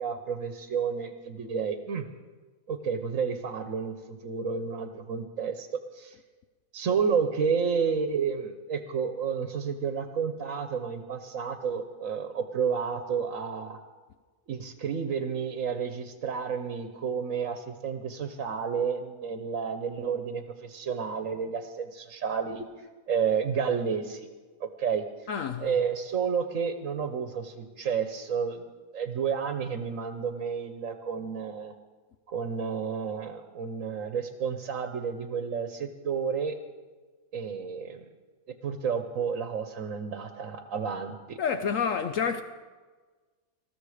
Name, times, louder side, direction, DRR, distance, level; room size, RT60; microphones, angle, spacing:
voice 1, 0.0-2.0 2.7-5.7 5.9-6.2 6.7-13.8 14.5-24.3 24.6-25.0 25.6-28.6 28.9-31.7 32.3-36.6 37.3-38.0 38.6-41.4, right 6 dB, 65° right, 1.3 m, -31 dB
voice 2, 25.3-25.7 41.4-42.4, left 6 dB, 65° left, 1.0 m, -28 dB
20.0 x 14.0 x 5.0 m
omnidirectional pair, 1.5 m